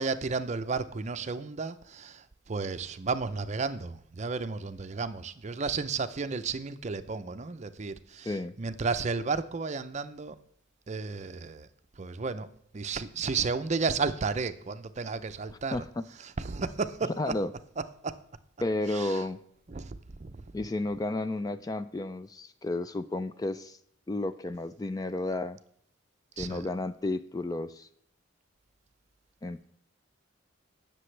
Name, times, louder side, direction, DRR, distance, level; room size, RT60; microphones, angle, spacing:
voice 1, 0.0-10.4 10.9-11.7 12.0-12.5 12.7-15.8 16.2-17.3 18.0-18.1 18.9-19.2 19.7-20.4 26.4-26.7, right 4 dB, 35° right, 0.5 m, -33 dB
voice 2, 15.7-16.0 17.2-17.5 18.6-19.4 20.5-23.8 24.1-25.6 26.4-27.9 29.4-29.6, left 2 dB, 20° left, 0.3 m, -32 dB
17.5 x 6.8 x 3.2 m
head